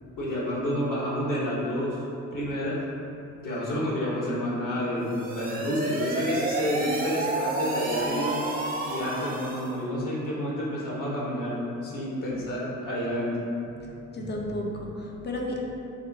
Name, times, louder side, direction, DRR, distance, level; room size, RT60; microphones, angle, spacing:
voice 1, 0.2-2.0 2.3-2.8 3.4-8.4 8.9-11.6 11.8-13.3, equal, 45° left, -6 dB, 1.3 m, -29 dB
sound 1, 5.0-9.8, right 2 dB, 20° right, 0.5 m, -31 dB
voice 2, 13.8-15.6, left 1 dB, 25° left, -1 dB, 0.7 m, -33 dB
5.8 x 2.2 x 2.7 m, 2.9 s
figure-of-eight pair, 45°, 42 cm